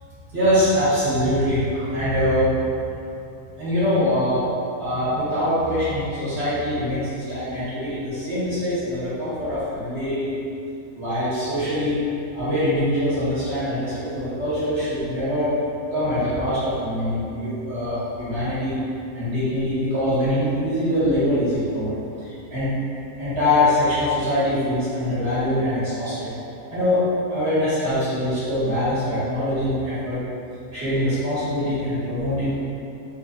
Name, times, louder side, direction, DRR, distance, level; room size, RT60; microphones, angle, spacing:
voice 1, 0.3-2.5 3.6-4.4 4.8-10.3 10.9-12.0 12.3-15.5 15.9-18.8 19.1-21.9 22.5-22.7 23.2-26.3 26.7-27.0 27.3-30.2 30.7-32.5, left 1 dB, 50° right, -14 dB, 1.9 m, -23 dB
3.9 x 3.8 x 2.7 m, 2.7 s
omnidirectional pair, 1.5 m